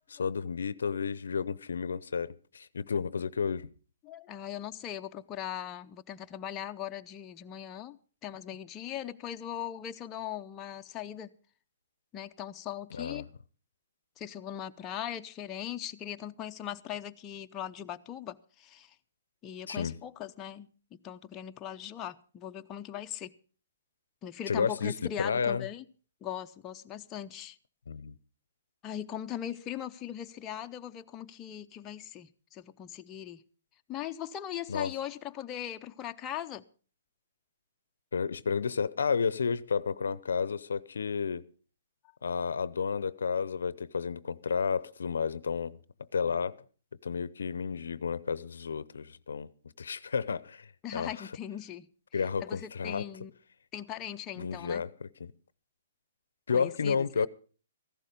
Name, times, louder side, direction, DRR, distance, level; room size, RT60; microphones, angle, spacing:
voice 1, 0.1-3.7 12.9-13.3 19.7-19.9 24.5-25.7 27.9-28.2 34.7-34.9 38.1-41.5 42.2-45.8 46.1-46.6 47.0-49.5 49.8-51.3 52.1-53.1 54.4-55.3 56.5-57.3, left 6 dB, 80° left, 0.6 m, -31 dB
voice 2, 4.0-11.3 12.1-13.3 14.2-18.9 19.4-23.4 24.2-25.8 26.2-27.6 28.8-33.4 33.9-36.7 50.8-51.9 52.4-53.3 53.7-54.8 56.5-57.3, left 10 dB, 25° left, 0.6 m, -40 dB
14.5 x 12.0 x 5.2 m
hypercardioid pair, 135°, 0 cm